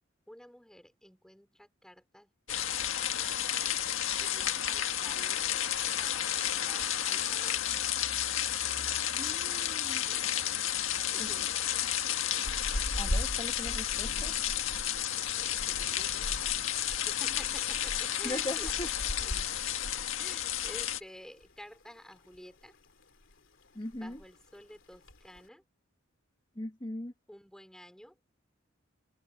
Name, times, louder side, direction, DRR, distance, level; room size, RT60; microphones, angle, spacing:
voice 1, 0.3-3.8 4.2-5.5 6.0-7.7 10.1-10.3 11.1-12.2 15.3-19.5 20.2-22.7 23.9-25.6 27.3-28.2, equal, 5° left, 3.8 m, -52 dB
sound 1, 2.5-21.0, left 11 dB, 85° left, 1.7 m, -32 dB
voice 2, 9.2-10.0 11.2-11.3 13.0-14.3 18.2-18.9 23.7-24.2 26.5-27.1, left 1 dB, 25° left, 1.6 m, -39 dB
sound 2, 12.5-21.0 21.2-21.5 21.8-22.7 23.0-23.4 23.6-23.7 23.9-24.4 24.9-25.4, equal, 70° left, 3.4 m, -39 dB
head